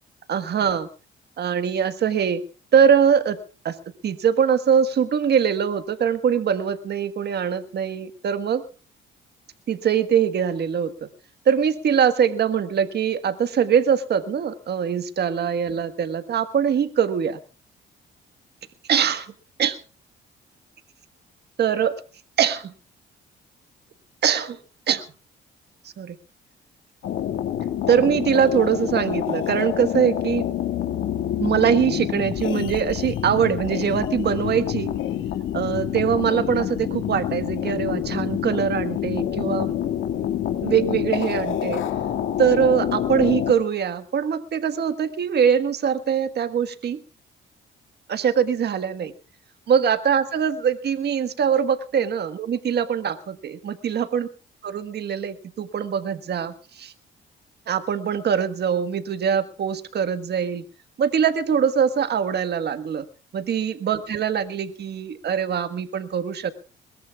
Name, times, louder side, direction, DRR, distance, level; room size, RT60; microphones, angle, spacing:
voice 1, 0.3-0.9 1.4-2.4 2.7-3.4 3.6-3.8 4.0-8.6 9.7-11.1 11.4-17.4 18.9-19.3 19.6-19.8 21.6-22.0 22.4-22.7 24.2-24.6 24.9-25.0 26.0-26.1 27.9-30.4 31.4-34.9 35.5-39.7 40.6-41.8 42.4-47.0 48.1-49.1 49.7-54.3 54.6-56.9 57.7-60.6 61.0-63.0 63.3-66.5, right 8 dB, 55° right, 10 dB, 1.5 m, -22 dB
sound 1, 27.0-43.5, left 10 dB, 80° left, 2.2 m, -27 dB
21.5 x 21.5 x 2.4 m, 0.35 s
cardioid pair, 90°, 20 cm